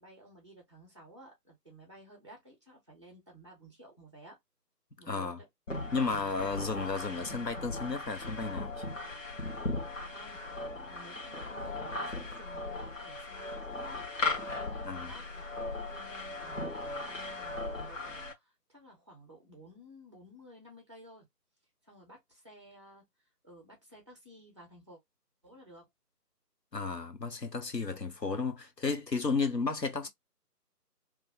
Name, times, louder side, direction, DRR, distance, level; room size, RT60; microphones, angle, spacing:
voice 1, 0.0-4.4 5.0-5.5 10.1-14.0 14.5-15.6 15.9-21.3 21.8-23.0 23.4-25.0 25.4-25.9, equal, 20° right, 1.1 m, -54 dB
voice 2, 5.1-5.4 5.9-8.8 14.8-15.1 26.7-30.1, left 4 dB, 90° left, 1.3 m, -33 dB
sound 1, 5.7-18.3, left 2 dB, 50° left, 1.6 m, -38 dB
3.5 x 3.2 x 2.3 m
figure-of-eight pair, 160°, 48 cm